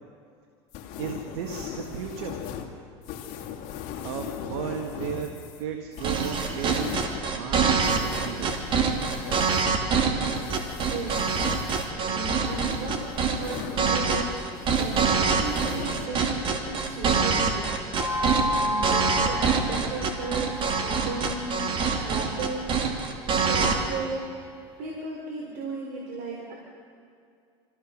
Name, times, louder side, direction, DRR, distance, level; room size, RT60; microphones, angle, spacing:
sound 1, 0.7-14.2 14.5-16.1, left 9 dB, 60° left, 2.2 m, -39 dB
voice 1, 1.0-2.5 4.0-5.3 5.6-7.0 7.3-7.7 8.0-8.6, right 8 dB, 80° right, 3 dB, 1.8 m, -34 dB
sound 2, 6.0-23.8, right 5 dB, 40° right, 2.6 m, -25 dB
voice 2, 10.9-11.3 12.0-14.4 14.7-18.1 18.5-23.0 23.4-24.2 24.8-26.5, right 3 dB, 65° right, -2 dB, 4.0 m, -35 dB
sound 3, 18.0-22.5, left 1 dB, 10° right, 4.8 m, -32 dB
26.0 x 15.5 x 6.4 m, 2.4 s
supercardioid pair, 120°, 13 cm